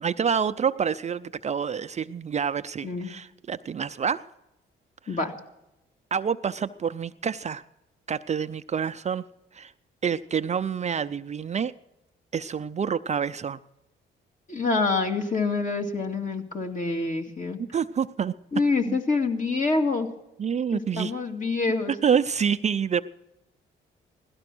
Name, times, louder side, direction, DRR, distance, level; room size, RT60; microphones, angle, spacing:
voice 1, 0.0-4.2 6.1-7.6 8.1-9.2 9.5-9.7 10.0-11.7 12.3-13.6 17.7-18.3 18.9-19.0 20.4-21.1 22.0-23.0, right 7 dB, 35° right, 11 dB, 0.5 m, -27 dB
voice 2, 14.5-17.6 18.5-20.1 20.7-21.9, left 3 dB, 40° left, 4 dB, 2.4 m, -26 dB
17.0 x 12.5 x 6.1 m, 0.92 s
cardioid pair, 90°, 20 cm